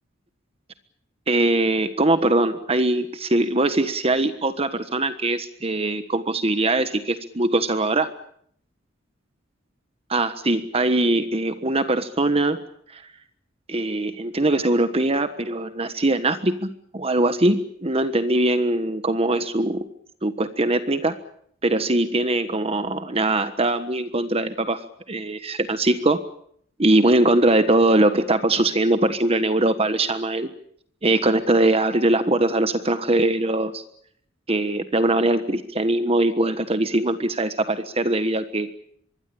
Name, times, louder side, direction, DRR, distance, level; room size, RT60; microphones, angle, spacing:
voice 1, 1.3-8.1 10.1-12.6 12.9-13.0 13.7-19.8 20.2-21.2 21.6-24.8 25.1-26.2 26.8-30.5 31.0-33.8 34.5-38.7, right 2 dB, 30° right, 10 dB, 1.4 m, -21 dB
25.0 x 21.5 x 8.6 m, 0.66 s
head